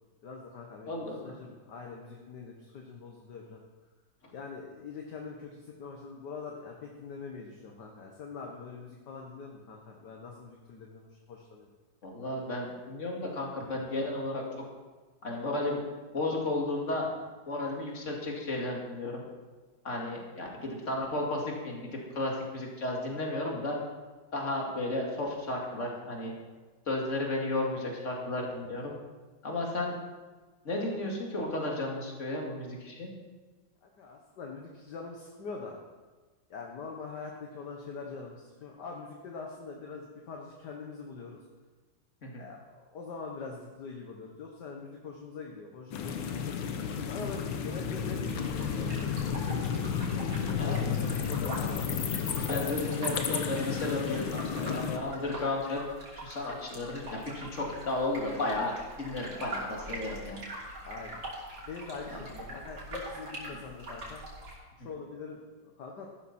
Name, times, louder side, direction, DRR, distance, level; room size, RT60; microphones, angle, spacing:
voice 1, 0.2-1.0 1.2-3.6 4.3-11.7 33.8-35.8 36.5-41.4 42.4-46.7 47.1-52.0 60.8-61.2 61.6-64.2 64.8-66.1, left 4 dB, 60° left, 0 dB, 1.8 m, -44 dB
voice 2, 0.9-1.3 12.0-14.4 15.2-15.8 16.1-17.1 17.5-19.3 19.8-23.8 24.3-26.3 26.9-29.0 29.4-30.0 30.6-33.1 42.2-42.4 50.5-50.8 52.5-55.8 56.2-60.4 62.1-62.2 63.5-63.6 64.8-64.9, left 2 dB, 35° left, -1 dB, 2.6 m, -33 dB
sound 1, 45.9-55.0, left 7 dB, 85° left, 1.8 m, -32 dB
sound 2, 48.2-64.6, right 1 dB, 80° right, 4.0 m, -43 dB
14.0 x 12.0 x 4.3 m, 1.3 s
omnidirectional pair, 2.2 m